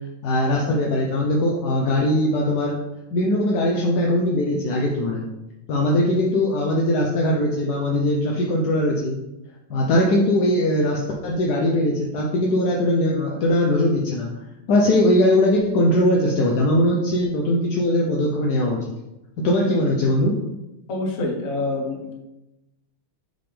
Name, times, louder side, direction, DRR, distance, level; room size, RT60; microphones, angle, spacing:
voice 1, 0.2-2.8 3.1-5.3 5.7-9.2 9.7-14.3 14.7-18.8 19.4-20.3, left 1 dB, 65° left, -1 dB, 1.0 m, -20 dB
voice 2, 20.9-22.1, left 2 dB, 45° left, -1 dB, 1.3 m, -26 dB
5.8 x 3.6 x 5.0 m, 0.96 s
omnidirectional pair, 2.4 m